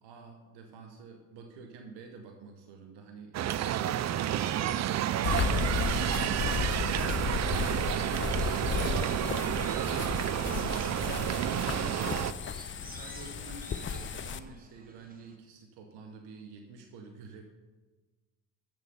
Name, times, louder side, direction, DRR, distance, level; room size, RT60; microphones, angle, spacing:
voice 1, 0.0-5.1 11.2-12.0 12.8-17.4, right 4 dB, 80° right, 4 dB, 1.0 m, -48 dB
sound 1, 3.3-12.3, right 11 dB, 45° right, 0.4 m, -30 dB
sound 2, 5.2-14.4, left 7 dB, 30° left, 0.5 m, -34 dB
sound 3, 7.8-15.4, right 3 dB, 20° right, 1.1 m, -53 dB
8.3 x 6.6 x 5.4 m, 1.3 s
supercardioid pair, 70°, 40 cm